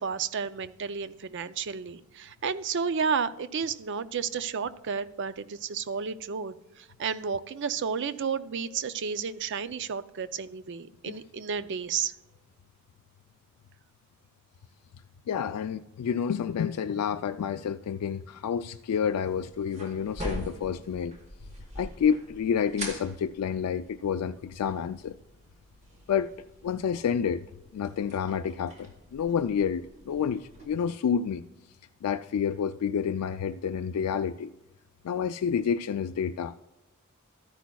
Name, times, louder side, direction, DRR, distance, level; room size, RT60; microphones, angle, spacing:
voice 1, 0.0-12.1, right 6 dB, 55° right, 14 dB, 0.4 m, -32 dB
voice 2, 15.3-21.2 21.8-25.1 26.1-26.3 26.6-27.5 27.7-31.4 32.0-34.5 35.0-36.5, left 7 dB, 85° left, 8 dB, 0.3 m, -29 dB
sound 1, 19.0-30.7, equal, 30° right, 1.5 m, -44 dB
12.5 x 10.0 x 2.3 m, 0.96 s
head